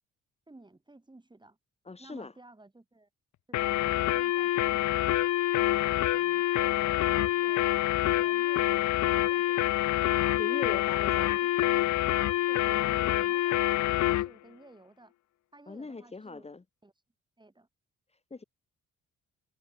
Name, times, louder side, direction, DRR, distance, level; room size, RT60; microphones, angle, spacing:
voice 1, 0.5-1.6 2.0-3.1 3.5-5.1 5.5-8.9 9.3-9.7 10.1-10.9 11.4-12.2 12.5-15.1 15.5-16.5 16.8-16.9 17.4-17.7, right 2 dB, 15° right, 4.5 m, -54 dB
voice 2, 1.8-2.3 10.3-11.4 12.7-13.3 15.7-16.6 18.1-18.4, left 3 dB, 20° left, 2.4 m, -41 dB
sound 1, 3.5-14.3, left 15 dB, 70° left, 0.7 m, -26 dB
cardioid pair, 90°, 30 cm